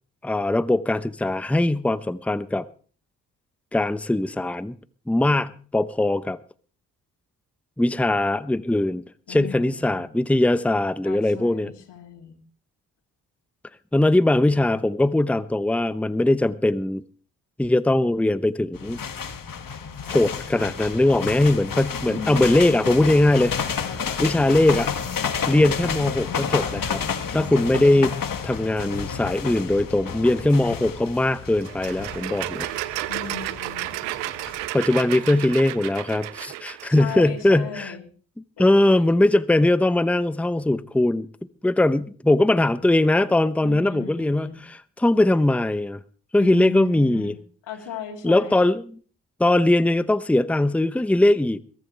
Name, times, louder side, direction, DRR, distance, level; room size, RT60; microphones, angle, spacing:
voice 1, 0.2-2.7 3.7-4.8 5.1-6.4 7.8-9.0 9.3-11.7 13.9-17.0 17.6-19.0 20.1-23.5 24.2-24.9 25.5-27.0 27.3-28.1 28.4-32.7 34.7-37.9 38.6-41.3 41.6-46.0 46.3-47.3 48.2-48.8 49.4-51.6, left 1 dB, 5° left, 0.8 m, -20 dB
voice 2, 9.3-10.1 11.0-12.4 22.1-22.7 23.8-24.2 33.1-33.9 34.7-35.3 36.9-38.1 38.6-39.0 43.6-44.6 46.4-47.4 47.7-48.7, left 7 dB, 70° left, 3.3 m, -37 dB
sound 1, 18.7-34.7, left 6 dB, 50° left, 2.1 m, -31 dB
sound 2, 31.6-37.3, right 19 dB, 85° right, 0.7 m, -32 dB
22.0 x 13.0 x 3.4 m
hypercardioid pair, 45°, 43 cm